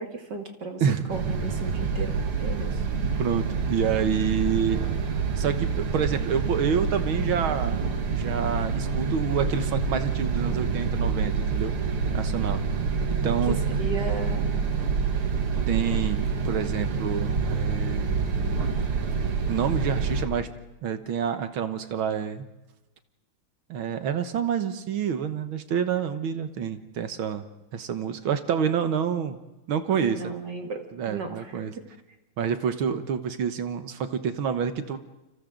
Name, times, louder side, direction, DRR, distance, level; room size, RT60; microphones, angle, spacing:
voice 1, 0.0-0.8 1.1-2.8 13.5-14.6 30.0-31.9, right 3 dB, 55° right, 4 dB, 2.7 m, -35 dB
voice 2, 0.8-1.1 3.2-4.8 5.4-7.8 8.1-11.7 12.1-12.6 13.2-13.6 15.7-18.2 19.5-20.5 20.8-22.5 23.7-27.4 27.7-29.4 29.7-30.3 30.9-31.7 32.4-35.0, right 7 dB, 70° right, 9 dB, 2.0 m, -28 dB
sound 1, 1.1-20.3, right 5 dB, 90° right, 2.7 m, -27 dB
29.5 x 26.0 x 3.9 m, 1.0 s
omnidirectional pair, 2.3 m